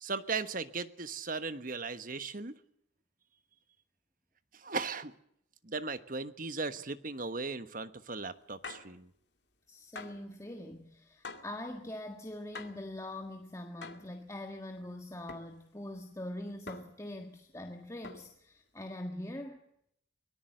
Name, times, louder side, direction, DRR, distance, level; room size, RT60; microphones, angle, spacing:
voice 1, 0.0-2.6 4.5-5.1 5.6-9.1, right 4 dB, 45° right, 12 dB, 1.2 m, -37 dB
sound 1, 8.6-8.9 10.0-10.3 11.2-11.6 12.6-12.9 13.8-14.1 15.3-15.5 16.7-17.1 18.0-18.4, left 4 dB, 60° left, 2.4 m, -45 dB
voice 2, 9.7-19.6, left 1 dB, 15° left, 4 dB, 1.7 m, -43 dB
24.0 x 18.0 x 7.7 m, 0.73 s
head